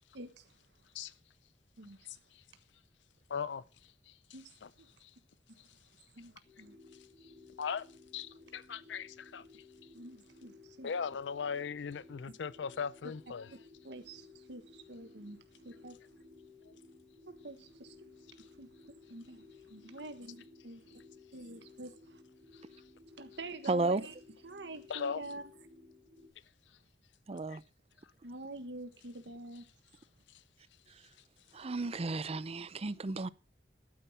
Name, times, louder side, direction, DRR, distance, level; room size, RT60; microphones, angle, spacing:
voice 1, 0.1-0.5 1.8-2.2 4.3-4.5 4.8-4.9 6.1-6.8 9.9-10.9 13.5-13.6 13.8-15.4 15.6-16.0 17.3-18.1 18.6-18.7 19.1-20.8 21.3-22.2 23.2-24.1 24.4-25.4 28.2-29.7, right 2 dB, 70° right, 1.5 m, -47 dB
voice 2, 3.3-3.6 4.1-4.2 4.6-4.7 5.0-5.1 7.6-7.9 8.1-9.6 10.8-13.5 22.5-22.6 24.9-25.2 27.5-27.6, left 6 dB, 75° left, 0.5 m, -38 dB
sound 1, 6.4-26.3, left 3 dB, 40° left, 4.7 m, -58 dB
voice 3, 23.7-24.0 27.3-27.6 31.5-33.3, right 3 dB, 35° right, 0.6 m, -33 dB
12.5 x 9.3 x 5.6 m
head